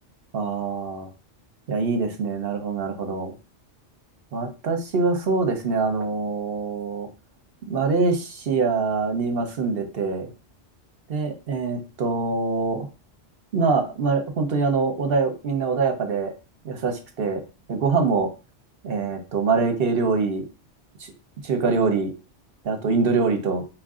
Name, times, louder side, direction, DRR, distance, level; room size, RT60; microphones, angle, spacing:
voice 1, 0.3-1.1 1.7-3.4 4.3-7.1 7.7-10.3 11.1-12.9 13.5-16.3 16.6-17.4 17.7-18.3 18.8-20.4 21.0-21.1 21.4-22.1 22.6-23.6, right 4 dB, 60° right, 5 dB, 1.0 m, -24 dB
4.7 x 2.5 x 3.7 m, 0.31 s
omnidirectional pair, 1.1 m